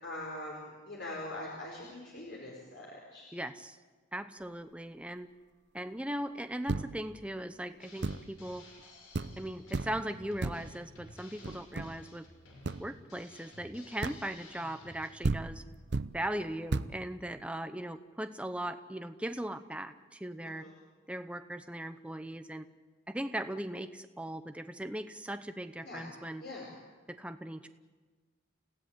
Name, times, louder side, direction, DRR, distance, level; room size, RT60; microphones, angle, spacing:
voice 1, 0.0-3.3 20.4-20.7 25.8-26.0 26.4-26.7, left 1 dB, 55° left, -3 dB, 5.1 m, -43 dB
voice 2, 3.3-3.8 4.1-5.3 5.7-8.6 9.4-12.2 12.8-15.6 16.1-20.6 21.1-22.7 23.1-26.4 27.1-27.7, right 1 dB, 5° right, 8 dB, 0.9 m, -39 dB
sound 1, 6.7-7.2 8.0-8.4 8.8-8.9 9.1-9.5 9.7-10.1 10.4-10.8 11.4-12.1 12.6-12.9 14.0-14.4 15.0-15.1 15.2-16.2 16.7-17.0, right 3 dB, 55° right, 0.7 m, -34 dB
Drum kit, 7.8-15.1, left 2 dB, 80° left, 6.1 m, -54 dB
30.0 x 16.5 x 9.1 m, 1.4 s
head